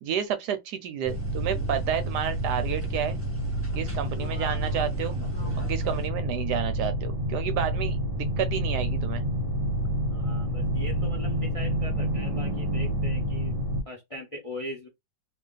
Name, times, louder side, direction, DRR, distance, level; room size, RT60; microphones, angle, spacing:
voice 1, 0.0-3.2 3.8-5.2 5.6-9.2, right 9 dB, 75° right, 1.0 m, -30 dB
sound 1, 1.0-13.8, right 1 dB, 45° right, 0.8 m, -29 dB
sound 2, 1.1-6.1, equal, 10° right, 1.1 m, -40 dB
voice 2, 10.1-13.6 13.8-14.9, left 1 dB, 30° left, 0.6 m, -40 dB
2.7 x 2.6 x 3.8 m
omnidirectional pair, 2.0 m